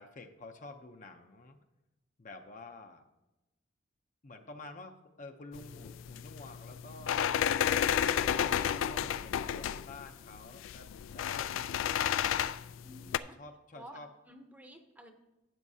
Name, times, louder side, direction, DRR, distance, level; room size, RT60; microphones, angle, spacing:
voice 1, 0.0-1.6 2.2-3.0 4.2-7.4 8.0-12.3 13.2-14.1, left 2 dB, 40° left, 5 dB, 0.6 m, -50 dB
sound 1, 5.5-13.2, left 9 dB, 80° left, 0.3 m, -32 dB
voice 2, 12.8-13.4 13.7-14.0 14.3-15.1, right 1 dB, 10° right, 5 dB, 0.7 m, -51 dB
12.0 x 8.7 x 2.7 m, 0.99 s
head